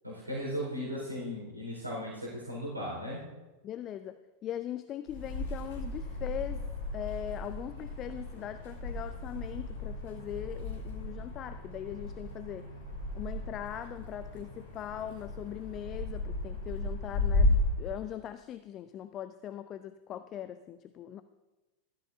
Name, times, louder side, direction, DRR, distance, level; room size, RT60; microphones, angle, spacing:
voice 1, 0.0-3.2, equal, 85° right, -5 dB, 4.3 m, -37 dB
voice 2, 3.6-6.7 6.9-12.7 13.1-21.2, left 11 dB, 30° left, 12 dB, 0.4 m, -40 dB
sound 1, 5.1-17.7, left 2 dB, 55° left, 4.3 m, -34 dB
16.0 x 13.5 x 2.6 m, 1.1 s
figure-of-eight pair, 90°, 0 cm